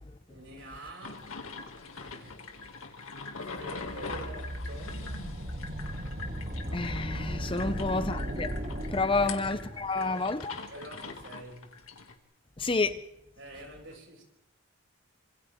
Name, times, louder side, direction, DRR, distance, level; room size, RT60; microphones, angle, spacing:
voice 1, 0.3-1.4 1.9-2.6 3.4-5.2 7.5-7.9 9.0-9.3 9.8-11.9 13.4-14.2, right 1 dB, 65° right, 7.1 m, -47 dB
sound 1, 1.0-12.2, left 4 dB, 90° left, 2.6 m, -43 dB
sound 2, 3.6-10.0, equal, 45° right, 4.7 m, -37 dB
voice 2, 6.7-8.6 8.9-10.5 12.6-13.0, left 3 dB, 25° left, 0.8 m, -29 dB
27.0 x 26.5 x 3.8 m
head